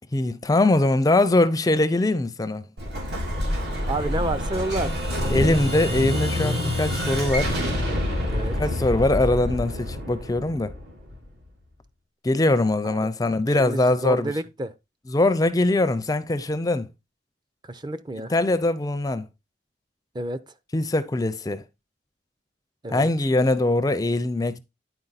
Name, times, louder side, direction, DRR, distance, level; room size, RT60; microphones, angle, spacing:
voice 1, 0.1-2.6 5.3-7.7 8.3-10.7 12.2-14.3 15.1-16.9 18.3-19.3 20.7-21.6 22.9-24.6, left 2 dB, 20° left, 0.5 m, -22 dB
Explosion, 2.8-11.4, left 1 dB, 70° right, 2.8 m, -27 dB
voice 2, 3.8-4.9 5.2-5.8 8.3-8.6 12.8-13.1 13.6-14.7 17.7-18.3 20.1-20.4 22.8-23.1, right 2 dB, 25° right, 0.6 m, -30 dB
9.9 x 4.6 x 4.0 m
head